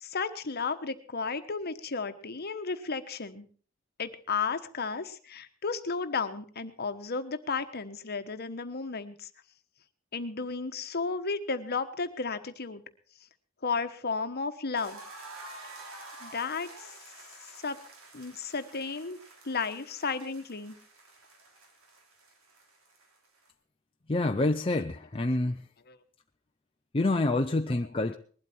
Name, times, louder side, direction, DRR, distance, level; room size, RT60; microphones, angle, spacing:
voice 1, 0.0-3.5 4.0-9.3 10.1-12.8 13.6-15.0 16.2-16.9 17.6-17.8 18.1-19.2 19.4-20.7 25.9-26.0, left 4 dB, 50° left, 1.2 m, -33 dB
sound 1, 14.8-23.5, right 2 dB, 80° right, 3.2 m, -49 dB
voice 2, 24.1-25.6 26.9-28.1, left 2 dB, 25° left, 0.6 m, -27 dB
20.0 x 12.0 x 4.4 m
head